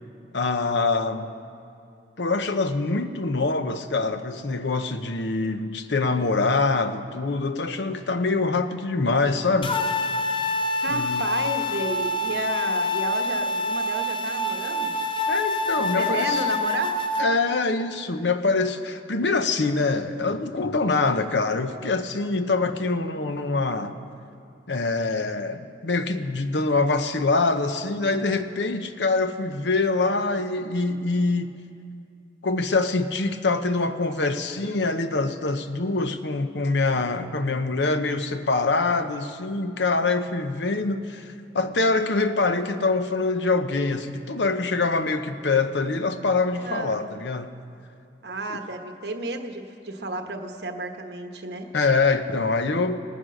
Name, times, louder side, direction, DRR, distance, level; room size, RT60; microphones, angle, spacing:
voice 1, 0.3-1.3 2.2-9.8 10.9-11.3 15.3-16.4 17.2-24.0 24.7-31.5 32.4-47.5 51.7-53.0, left 3 dB, 80° left, 9 dB, 0.8 m, -24 dB
sound 1, 9.6-17.2, left 2 dB, 30° left, 0.7 m, -26 dB
voice 2, 10.8-15.0 15.7-17.0 46.6-47.0 48.2-51.7, right 2 dB, 65° right, 5 dB, 1.1 m, -32 dB
18.5 x 9.9 x 6.4 m, 2.4 s
head